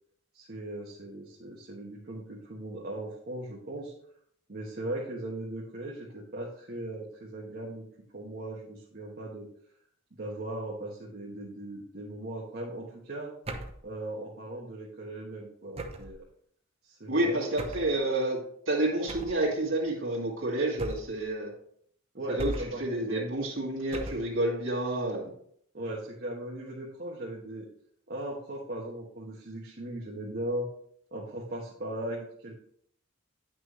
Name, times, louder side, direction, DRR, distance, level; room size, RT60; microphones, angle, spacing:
voice 1, 0.3-3.9 4.5-7.9 8.1-9.5 10.1-13.3 13.8-16.2 16.8-17.4 17.6-17.9 22.1-23.3 25.7-27.7 28.1-30.7 31.1-32.6, right 1 dB, 50° right, -3 dB, 1.2 m, -38 dB
sound 1, 13.5-13.9 15.8-16.2 17.6-18.0 19.1-19.5 20.8-21.2 22.4-22.9 23.9-24.3, right 1 dB, 30° right, 0.7 m, -38 dB
voice 2, 17.1-18.4 18.7-21.5 22.3-25.3, right 1 dB, 65° right, -5 dB, 2.3 m, -29 dB
9.5 x 6.0 x 3.2 m, 0.64 s
head